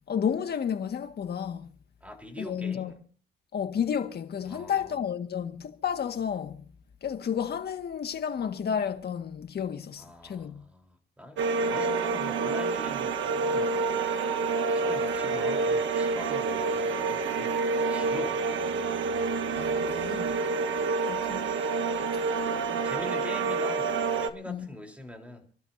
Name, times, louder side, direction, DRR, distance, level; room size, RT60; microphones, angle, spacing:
voice 1, 0.1-1.7 2.4-2.9 3.5-6.6 7.0-10.6 19.6-20.3 21.0-21.5 24.5-24.7, left 8 dB, 55° left, 1.9 m, -31 dB
voice 2, 2.0-3.0 4.4-5.0 10.0-13.8 14.7-17.6 17.9-18.4 20.3-20.6 22.5-23.9 24.2-25.4, left 1 dB, 5° right, 3.9 m, -43 dB
sound 1, 11.4-24.3, right 4 dB, 75° right, 1.3 m, -28 dB
28.5 x 12.5 x 2.8 m
cardioid pair, 90°, 20 cm